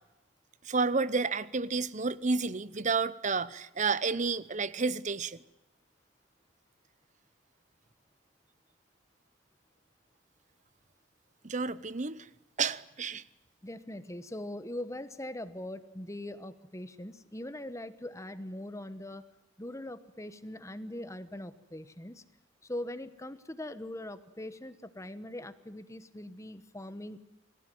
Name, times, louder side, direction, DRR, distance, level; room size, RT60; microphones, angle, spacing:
voice 1, 0.6-5.4 11.4-12.3 12.6-13.2, right 4 dB, 35° right, 17 dB, 0.8 m, -30 dB
voice 2, 13.6-19.2 19.6-22.2 22.6-27.2, left 1 dB, 15° left, 13 dB, 1.1 m, -41 dB
25.5 x 16.5 x 9.2 m, 1.0 s
head